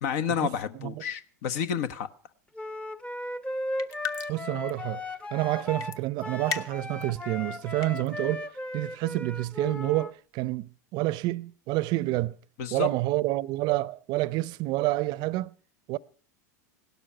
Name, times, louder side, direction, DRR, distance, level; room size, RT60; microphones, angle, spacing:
voice 1, 0.0-2.1 12.6-12.9, left 8 dB, 65° left, 1.1 m, -30 dB
Wind instrument woodwind instrument, 2.6-10.1, left 1 dB, 10° left, 0.8 m, -36 dB
sound 1, 3.8-4.4 4.7-4.8 5.8-6.0 6.5-7.0 7.6-8.1, left 7 dB, 40° left, 1.2 m, -34 dB
voice 2, 4.3-5.0 5.3-8.5 8.7-12.3 12.7-15.5 15.9-16.0, right 18 dB, 50° right, 0.6 m, -28 dB
17.5 x 12.5 x 5.6 m
hypercardioid pair, 100°, 9 cm